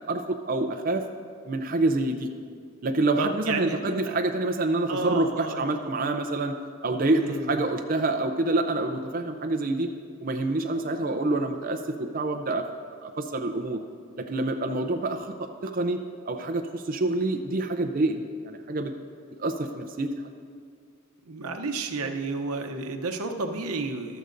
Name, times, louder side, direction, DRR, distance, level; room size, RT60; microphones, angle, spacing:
voice 1, 0.1-1.0 1.5-2.3 2.8-6.6 6.8-9.9 10.2-12.6 13.0-13.8 14.2-16.0 16.3-18.9 19.4-20.1 22.0-22.1, right 2 dB, 40° right, 5 dB, 0.5 m, -27 dB
voice 2, 3.2-3.8 4.0-4.2 4.9-5.8 6.9-7.6 21.3-24.2, right 3 dB, 90° right, 5 dB, 0.8 m, -31 dB
14.5 x 12.5 x 2.6 m, 2.1 s
head